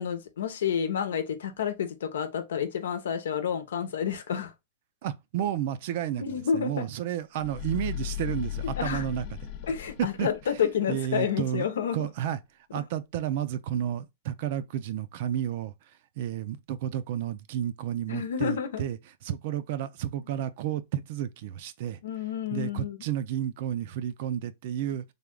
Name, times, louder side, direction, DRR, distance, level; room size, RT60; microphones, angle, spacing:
voice 1, 0.0-4.5 6.2-6.9 8.8-9.0 9.7-12.1 18.1-18.8 22.0-23.0, left 8 dB, 85° left, 0.8 m, -29 dB
voice 2, 5.0-9.2 10.0-10.3 10.9-11.7 11.9-12.4 12.7-15.7 16.2-19.0 19.2-22.0 22.5-25.0, right 10 dB, 60° right, 0.5 m, -31 dB
sound 1, 7.4-10.7, left 11 dB, 45° left, 0.7 m, -36 dB
3.5 x 2.3 x 3.7 m
hypercardioid pair, 130°, 0 cm